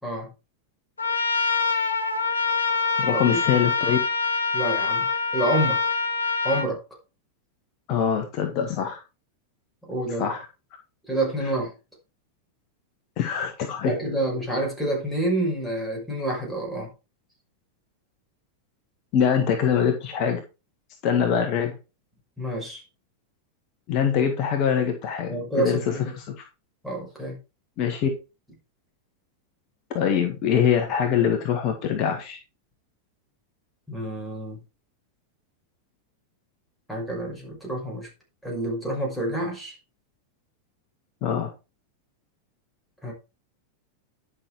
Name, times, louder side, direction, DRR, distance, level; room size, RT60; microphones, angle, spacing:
Trumpet, 1.0-6.7, left 5 dB, 75° left, 1.6 m, -25 dB
voice 1, 3.0-4.0 7.9-9.0 10.2-10.5 13.2-13.9 19.1-20.4 21.0-21.8 23.9-26.4 27.8-28.1 29.9-32.4 41.2-41.5, left 8 dB, 40° left, 4 dB, 1.7 m, -24 dB
voice 2, 4.5-5.1 5.3-5.8 6.4-6.8 9.8-10.3 11.1-11.7 13.8-16.9 22.4-22.8 25.3-26.1 26.8-27.4 33.9-34.6 36.9-38.1 38.4-39.7 43.0-43.1, right 1 dB, ahead, -2 dB, 5.9 m, -28 dB
11.0 x 6.3 x 4.7 m, 0.29 s
figure-of-eight pair, 90°, 0 cm